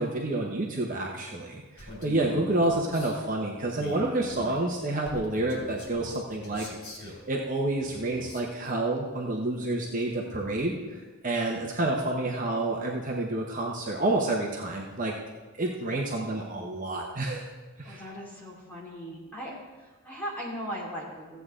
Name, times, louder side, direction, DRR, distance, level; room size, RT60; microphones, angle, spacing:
voice 1, 0.0-6.7 7.0-15.1 15.6-17.5 17.8-18.0, right 2 dB, 35° right, -1 dB, 1.0 m, -29 dB
Male speech man speaking, 1.8-3.2 3.7-7.2 7.8-8.5, left 1 dB, 85° left, 3.0 m, -43 dB
voice 2, 17.8-19.6 19.8-21.4, equal, 10° left, -6 dB, 2.7 m, -38 dB
15.0 x 8.2 x 3.7 m, 1.3 s
head